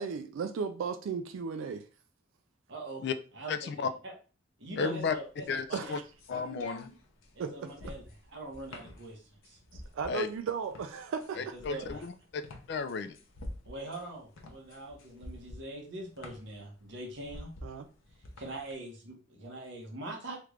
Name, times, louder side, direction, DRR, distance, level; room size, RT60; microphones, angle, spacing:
voice 1, 0.0-1.8 5.7-6.0 7.4-7.6 9.7-11.4 11.7-11.8 17.6-17.9, right 5 dB, 80° right, 0.3 m, -35 dB
voice 2, 2.7-3.0 3.3-4.1 4.6-6.0 7.3-8.0 8.3-9.6 11.4-12.1 13.7-17.5 18.4-20.4, right 2 dB, 60° right, 1.0 m, -43 dB
voice 3, 3.5-3.9 4.8-5.1 5.5-6.0 6.3-6.9 10.1-10.3 11.4-12.1 12.7-13.2, left 5 dB, 55° left, 0.3 m, -33 dB
sound 1, 5.0-18.7, left 1 dB, 85° left, 0.7 m, -48 dB
3.3 x 2.4 x 3.1 m
head